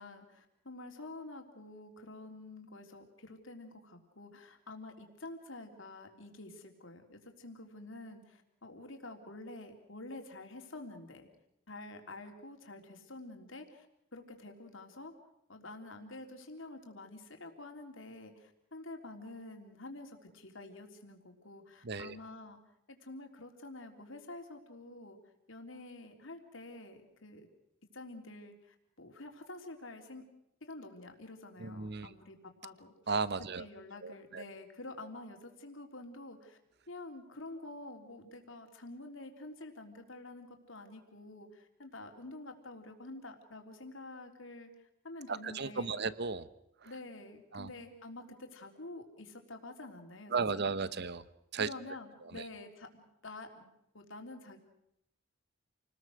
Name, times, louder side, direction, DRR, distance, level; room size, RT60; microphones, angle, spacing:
voice 1, 0.0-11.3 11.7-13.9 14.1-15.1 15.5-22.6 22.9-25.2 25.5-27.5 27.9-30.2 30.6-32.9 33.6-36.6 36.9-46.0 46.8-50.6 51.6-53.7 53.9-54.6, left 2 dB, 75° left, 4 dB, 3.6 m, -48 dB
voice 2, 21.8-22.2 31.6-32.1 33.1-33.6 34.0-34.4 45.3-46.5 46.8-46.9 47.5-47.7 50.3-51.2 51.5-51.7 52.2-52.4, right 4 dB, 55° right, 16 dB, 1.0 m, -35 dB
29.0 x 20.0 x 6.4 m, 0.80 s
head